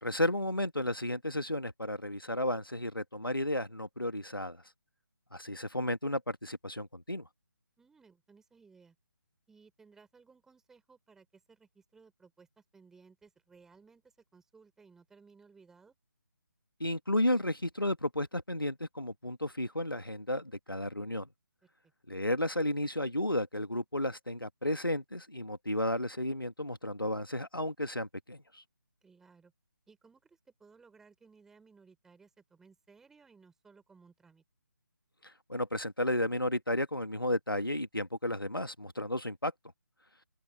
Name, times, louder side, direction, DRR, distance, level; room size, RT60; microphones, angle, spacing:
voice 1, 0.0-4.6 5.3-7.3 16.8-21.3 22.1-28.6 35.2-39.5, left 1 dB, 90° left, 1.6 m, -33 dB
voice 2, 7.8-9.0 9.5-12.5 12.7-15.9 29.0-29.5 29.9-34.4, right 5 dB, 5° right, 5.3 m, -60 dB
open air
figure-of-eight pair, 150°, 11 cm